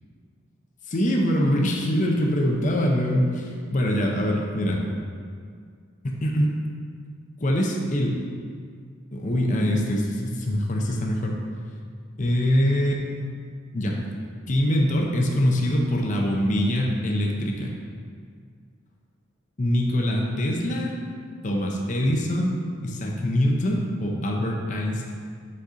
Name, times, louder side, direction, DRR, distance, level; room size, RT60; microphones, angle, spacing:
voice 1, 0.9-4.8 6.0-6.5 7.4-8.2 9.1-11.4 12.2-13.0 13.7-14.0 14.5-17.7 19.6-20.9 21.4-25.1, equal, 35° left, 0 dB, 0.6 m, -24 dB
5.3 x 4.1 x 5.0 m, 2.1 s
head